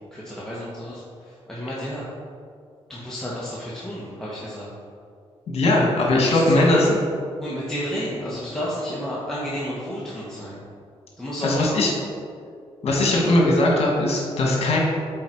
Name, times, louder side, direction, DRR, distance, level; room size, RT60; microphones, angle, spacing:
voice 1, 0.1-1.0 1.5-2.0 2.9-4.7 6.1-6.9 7.4-10.6 11.2-11.8 13.0-13.2, equal, 5° left, -8 dB, 1.3 m, -31 dB
voice 2, 5.5-6.9 11.4-11.9 12.8-14.8, left 1 dB, 70° left, -2 dB, 1.6 m, -19 dB
8.5 x 4.1 x 4.6 m, 2.2 s
cardioid pair, 105°, 11 cm